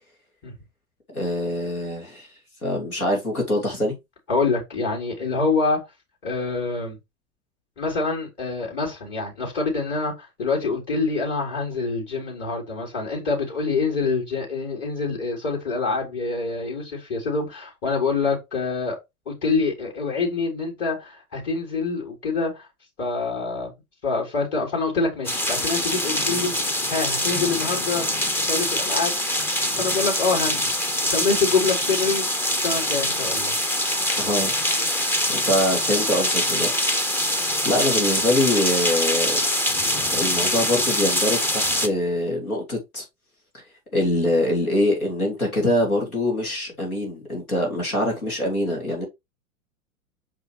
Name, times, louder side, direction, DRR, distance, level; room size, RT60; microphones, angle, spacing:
voice 1, 1.1-2.3 2.6-4.0 34.2-36.9 37.6-39.4 39.8-39.9 40.1-43.0 43.5-43.6 43.9-49.1, left 1 dB, 85° left, 2.8 m, -24 dB
voice 2, 4.3-5.8 6.2-7.0 7.8-19.0 19.2-22.6 23.0-23.7 24.0-26.5 26.9-28.0 28.4-29.1 29.8-30.7 31.1-33.5, left 4 dB, 35° left, 3.5 m, -26 dB
sound 1, 25.2-41.9, left 1 dB, 5° left, 0.4 m, -24 dB
5.7 x 5.5 x 3.1 m
figure-of-eight pair, 100°, 42 cm